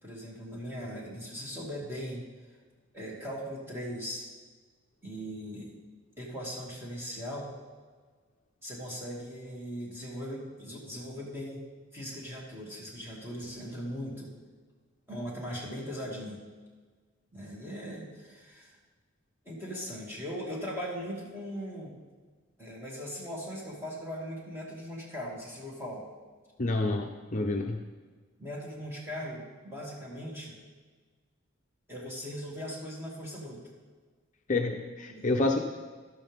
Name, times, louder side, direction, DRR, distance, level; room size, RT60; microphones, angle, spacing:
voice 1, 0.0-2.2 2.9-4.3 5.0-5.7 6.2-7.5 8.6-11.6 11.9-14.3 15.1-16.4 17.3-18.8 19.4-21.9 22.6-26.0 28.4-30.6 31.9-33.6 35.1-35.4, equal, 10° right, -5 dB, 2.5 m, -39 dB
voice 2, 26.6-27.8 34.5-35.6, left 2 dB, 35° left, 2 dB, 0.6 m, -28 dB
12.5 x 11.5 x 3.6 m, 1.4 s
head